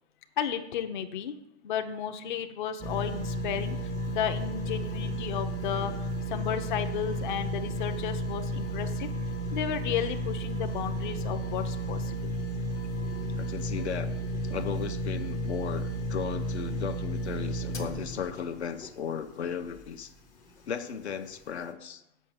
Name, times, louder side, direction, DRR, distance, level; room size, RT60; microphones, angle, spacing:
voice 1, 0.4-1.3 1.6-5.9 6.3-9.1 9.5-12.3, left 9 dB, 45° left, 6 dB, 0.8 m, -33 dB
sound 1, 2.8-20.0 20.5-20.6, right 1 dB, 10° left, 0.4 m, -33 dB
voice 2, 13.4-14.1 14.5-20.1 20.7-22.0, left 7 dB, 75° left, 7 dB, 0.9 m, -36 dB
7.4 x 5.5 x 7.2 m, 0.84 s
hypercardioid pair, 135°, 33 cm